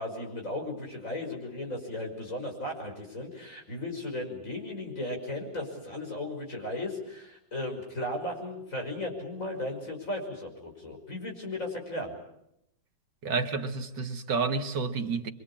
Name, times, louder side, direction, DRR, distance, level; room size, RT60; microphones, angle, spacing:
voice 1, 0.0-12.1, left 1 dB, 40° left, 6.4 m, -36 dB
voice 2, 13.2-15.3, right 4 dB, 70° right, 2.2 m, -30 dB
25.5 x 25.5 x 8.7 m
omnidirectional pair, 2.0 m